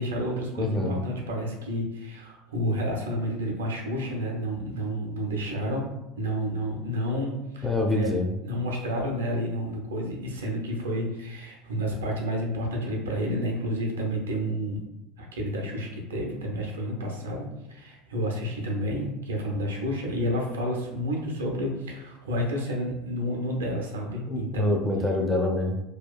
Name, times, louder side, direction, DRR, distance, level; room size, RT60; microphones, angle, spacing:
voice 1, 0.0-5.8 6.2-7.7 7.9-8.1 8.4-14.9 15.2-24.8, equal, 80° right, 0 dB, 0.5 m, -30 dB
voice 2, 0.6-1.0 7.6-8.3 24.3-25.8, left 2 dB, 5° right, 1 dB, 0.5 m, -25 dB
2.7 x 2.3 x 2.2 m, 0.91 s
figure-of-eight pair, 75°, 0 cm